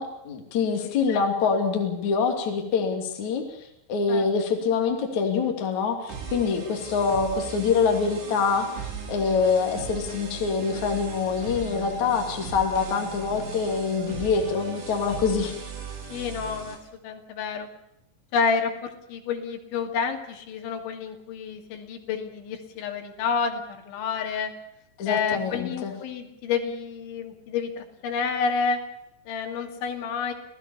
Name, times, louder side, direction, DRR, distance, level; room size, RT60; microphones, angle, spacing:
voice 1, 0.0-8.7 9.1-15.5 25.0-25.9, left 5 dB, 45° left, 3 dB, 3.8 m, -25 dB
voice 2, 0.8-1.3 4.1-4.3 16.1-16.8 17.0-17.7 18.3-24.5 25.1-28.8 29.3-30.3, left 5 dB, 80° left, 3 dB, 4.8 m, -29 dB
sound 1, 6.1-16.8, right 6 dB, 75° right, 6.9 m, -38 dB
27.5 x 17.0 x 7.2 m, 0.80 s
omnidirectional pair, 5.4 m